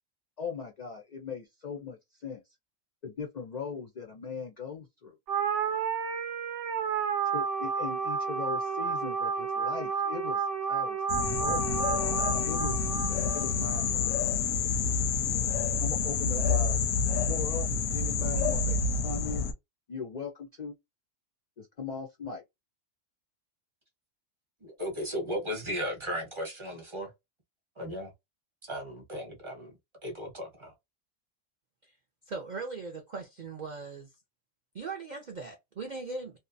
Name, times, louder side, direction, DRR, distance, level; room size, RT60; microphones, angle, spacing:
voice 1, 0.4-2.4 3.0-5.2 7.3-12.8 13.3-14.1 15.8-16.8 17.3-18.8 19.0-19.5 19.9-20.7 21.6-22.4, left 5 dB, 60° left, 0.4 m, -39 dB
sound 1, 5.3-13.9, right 6 dB, 70° right, 0.8 m, -31 dB
sound 2, 11.1-19.5, left 5 dB, 90° left, 1.0 m, -28 dB
voice 2, 24.6-27.1 27.8-28.1 28.6-29.7 30.0-30.7, equal, 25° right, 0.8 m, -36 dB
voice 3, 32.3-34.1 34.7-36.4, right 4 dB, 55° right, 0.5 m, -39 dB
2.7 x 2.1 x 2.5 m
omnidirectional pair, 1.3 m